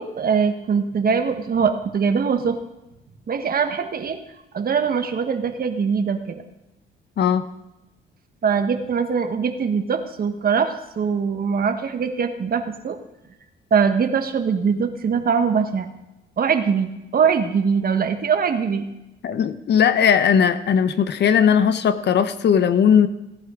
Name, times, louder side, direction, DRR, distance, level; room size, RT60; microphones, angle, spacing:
voice 1, 0.0-2.6 3.3-4.2 4.5-6.4 8.4-13.0 13.7-15.9 16.4-18.9, right 6 dB, 50° right, 8 dB, 1.3 m, -22 dB
voice 2, 7.2-7.5 19.2-23.1, left 7 dB, 60° left, 12 dB, 0.9 m, -18 dB
17.5 x 10.5 x 3.8 m, 0.96 s
cardioid pair, 90°, 20 cm